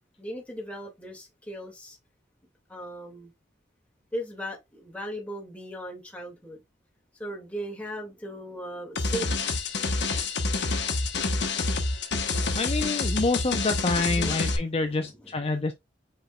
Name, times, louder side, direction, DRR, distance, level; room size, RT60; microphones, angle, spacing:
voice 1, 0.2-2.0 2.7-3.3 4.1-6.6 7.2-9.5 14.1-14.4 14.7-15.6, equal, 5° left, 2.0 m, -38 dB
sound 1, 9.0-14.6, left 3 dB, 65° left, 1.1 m, -27 dB
voice 2, 12.6-15.7, left 3 dB, 35° left, 0.5 m, -27 dB
5.0 x 4.6 x 2.3 m
head